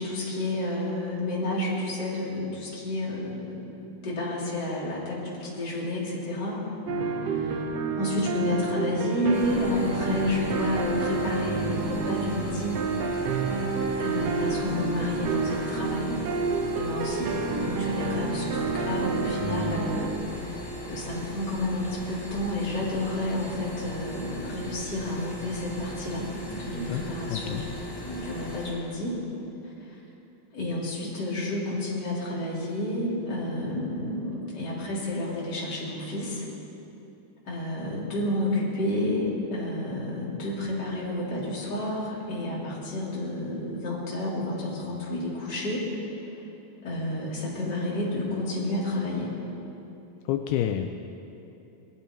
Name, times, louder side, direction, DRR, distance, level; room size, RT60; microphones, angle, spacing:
voice 1, 0.0-6.6 7.1-7.7 7.9-12.8 13.9-16.2 16.7-17.3 17.6-20.6 20.8-29.2 29.6-30.0 30.5-36.4 37.4-45.8 46.8-49.3, left 1 dB, 25° left, -6 dB, 3.3 m, -30 dB
sound 1, 6.9-20.1, right 4 dB, 90° right, 1.4 m, -29 dB
sound 2, 9.3-28.7, right 1 dB, 10° left, 3.9 m, -38 dB
voice 2, 27.3-27.6 50.3-51.0, left 10 dB, 80° left, 6 dB, 2.5 m, -28 dB
21.0 x 14.0 x 4.5 m, 2.9 s
omnidirectional pair, 4.6 m